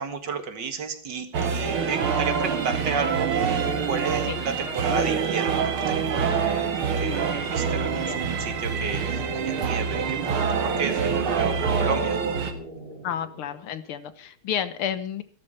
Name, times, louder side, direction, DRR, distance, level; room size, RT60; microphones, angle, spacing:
voice 1, 0.0-6.7 7.0-12.2, right 5 dB, 55° right, 8 dB, 2.2 m, -32 dB
sound 1, 1.3-12.5, right 6 dB, 80° right, 2.6 m, -26 dB
sound 2, 6.6-14.2, equal, 25° left, 3.6 m, -41 dB
voice 2, 7.9-8.2 13.0-15.2, left 9 dB, 80° left, 13 dB, 2.0 m, -31 dB
13.5 x 13.0 x 5.5 m, 0.39 s
omnidirectional pair, 2.3 m